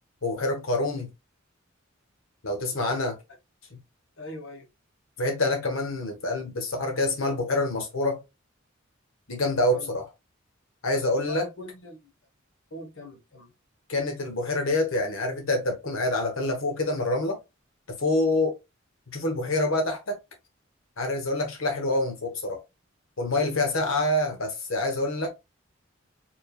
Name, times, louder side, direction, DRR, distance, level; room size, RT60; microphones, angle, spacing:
voice 1, 0.2-1.1 2.4-3.2 5.2-8.2 9.3-10.0 10.8-11.4 13.9-17.4 18.0-18.6 19.1-20.2 21.0-22.6 23.2-25.3, left 2 dB, 85° left, 1.3 m, -26 dB
voice 2, 4.2-4.7 9.7-9.9 11.1-12.1 12.7-13.5, left 2 dB, 70° left, 1.4 m, -41 dB
4.7 x 3.8 x 2.4 m
head